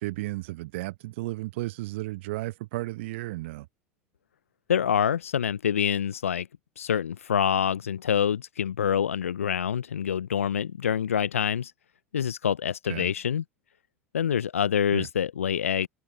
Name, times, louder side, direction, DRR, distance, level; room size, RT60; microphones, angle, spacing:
voice 1, 0.0-3.7 12.9-13.1 14.9-15.1, right 19 dB, 65° right, 0.9 m, -33 dB
voice 2, 4.7-6.5 6.8-11.7 12.1-13.4 14.1-15.9, left 8 dB, 80° left, 0.3 m, -26 dB
figure-of-eight pair, 80°, 7 cm